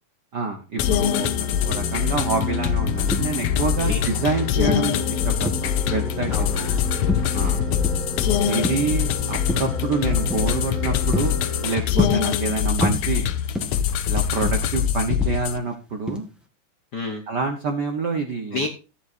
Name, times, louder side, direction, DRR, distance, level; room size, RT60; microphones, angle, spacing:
voice 1, 0.3-6.6 7.3-7.6 8.4-13.2 14.1-16.3 17.3-18.6, right 4 dB, 65° right, 4 dB, 1.0 m, -27 dB
sound 1, 0.8-15.6, left 9 dB, 80° left, 2.1 m, -24 dB
sound 2, 0.8-11.8, left 2 dB, 20° left, 1.2 m, -33 dB
sound 3, 3.1-4.2 4.6-5.9 6.3-6.7 7.1-8.2 8.5-9.0 9.5-9.8 10.3-10.5 10.9-12.5 12.8-14.0 14.3-15.7 16.1-16.4, left 1 dB, ahead, 0.7 m, -28 dB
voice 2, 3.8-4.3 6.3-7.0 7.4-7.8 8.5-8.8 16.9-17.2 18.5-18.7, left 2 dB, 55° left, 2 dB, 1.1 m, -32 dB
14.5 x 9.6 x 2.6 m, 0.32 s
omnidirectional pair, 3.5 m